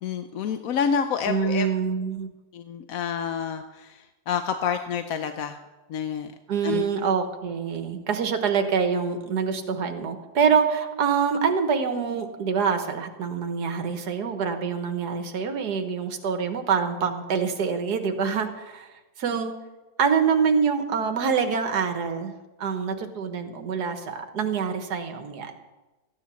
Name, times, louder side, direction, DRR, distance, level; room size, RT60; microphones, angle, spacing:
voice 1, 0.0-1.7 2.5-5.6 5.9-6.3 6.6-6.8, left 7 dB, 60° left, 7 dB, 1.0 m, -28 dB
voice 2, 1.3-2.3 6.5-18.9 19.2-19.6 20.0-25.5, right 6 dB, 60° right, 6 dB, 1.8 m, -25 dB
14.5 x 9.9 x 7.0 m, 1.1 s
omnidirectional pair, 2.0 m